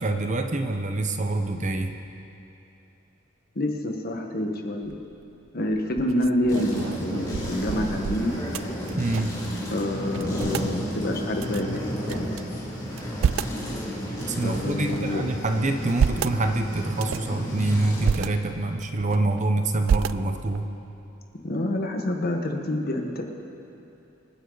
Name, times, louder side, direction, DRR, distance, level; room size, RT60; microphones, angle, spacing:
voice 1, 0.0-1.9 9.0-9.4 14.3-20.7, right 2 dB, 40° right, 6 dB, 0.8 m, -26 dB
voice 2, 3.5-4.9 5.5-8.3 9.7-12.2 14.4-15.2 21.4-23.2, left 1 dB, 50° left, 3 dB, 1.4 m, -27 dB
sound 1, 4.8-5.2 5.7-9.5 9.7-9.8 10.1-10.7 11.4-12.4 12.9-13.6 14.2-15.1 15.7-16.4 16.9-17.4 17.8-18.3 18.8-19.4 19.8-20.6, right 7 dB, 80° right, 0.3 m, -29 dB
sound 2, 6.5-18.1, equal, 20° left, 3.1 m, -32 dB
26.0 x 9.9 x 4.0 m, 2.8 s
head